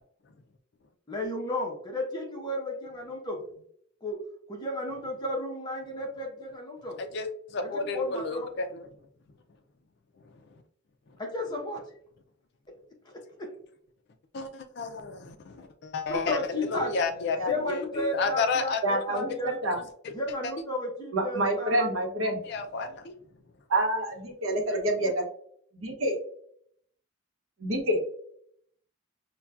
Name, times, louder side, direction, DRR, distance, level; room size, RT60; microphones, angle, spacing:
voice 1, 1.1-3.4 4.0-4.2 4.5-7.0 7.6-8.5 11.2-11.8 13.0-13.5 16.1-19.5 20.1-21.9, left 1 dB, 20° left, -1 dB, 0.8 m, -33 dB
voice 2, 7.1-8.9 14.3-18.8 22.5-23.1, left 4 dB, 50° left, 7 dB, 0.3 m, -31 dB
voice 3, 18.8-19.8 21.1-22.4 23.7-25.2 25.8-26.2 27.6-28.0, right 1 dB, 70° right, 2 dB, 0.8 m, -27 dB
5.6 x 2.2 x 2.3 m, 0.65 s
head